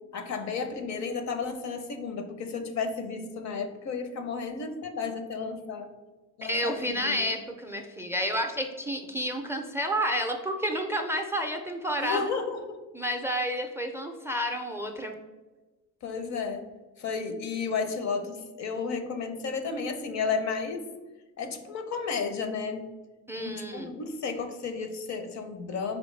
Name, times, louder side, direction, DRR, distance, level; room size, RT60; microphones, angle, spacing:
voice 1, 0.1-5.9 6.4-7.3 12.0-12.8 16.0-16.6 17.0-20.9 21.4-22.9 23.4-26.0, left 5 dB, 65° left, 7 dB, 0.6 m, -33 dB
voice 2, 6.4-12.3 12.9-15.1 23.3-23.9, equal, 10° right, 4 dB, 0.4 m, -30 dB
4.2 x 3.0 x 3.2 m, 1.2 s
cardioid pair, 90°, 30 cm